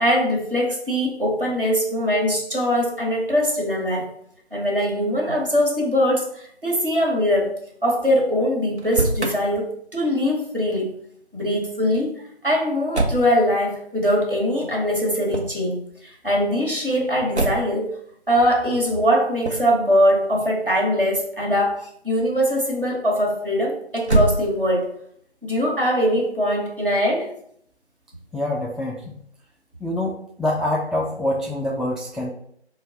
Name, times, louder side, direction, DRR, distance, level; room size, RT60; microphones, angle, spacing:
voice 1, 0.0-4.1 4.5-7.5 7.8-10.9 11.3-12.1 12.4-17.9 18.3-24.9 25.4-27.3, equal, 50° right, -2 dB, 1.3 m, -22 dB
Motor vehicle (road), 8.7-9.4 12.9-13.3 15.3-15.6 17.3-17.8 19.4-19.7 24.0-24.9, right 2 dB, 75° right, 0.8 m, -23 dB
voice 2, 28.3-29.2 29.8-32.3, left 1 dB, ahead, -2 dB, 0.4 m, -25 dB
4.5 x 2.2 x 3.9 m, 0.68 s
figure-of-eight pair, 175°, 34 cm